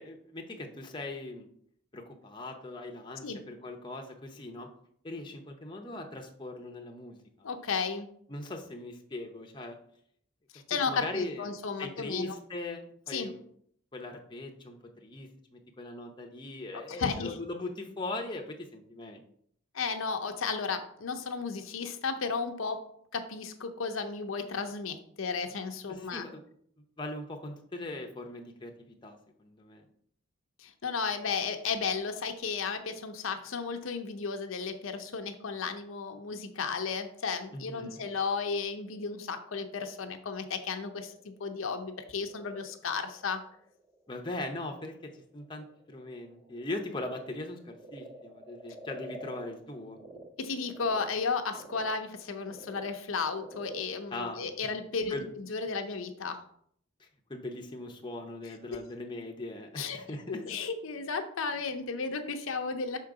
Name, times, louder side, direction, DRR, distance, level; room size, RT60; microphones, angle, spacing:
voice 1, 0.0-1.5 1.9-4.7 5.0-7.5 8.3-9.8 10.7-11.5 11.8-13.4 13.9-19.2 25.9-26.4 27.0-29.8 37.5-38.0 44.1-50.0 54.1-54.7 55.1-55.3 57.0-60.4, left 2 dB, 20° left, 2 dB, 0.6 m, -40 dB
voice 2, 7.4-8.1 10.5-12.4 13.1-13.3 16.9-17.4 19.7-22.9 23.1-26.2 30.6-43.4 50.4-56.4 58.5-58.8 59.7-60.0 60.3-63.0, left 5 dB, 75° left, 6 dB, 0.6 m, -34 dB
Frog, 37.5-50.2 50.6-55.3, right 1 dB, 45° right, 1.9 m, -51 dB
5.8 x 3.7 x 4.7 m, 0.65 s
head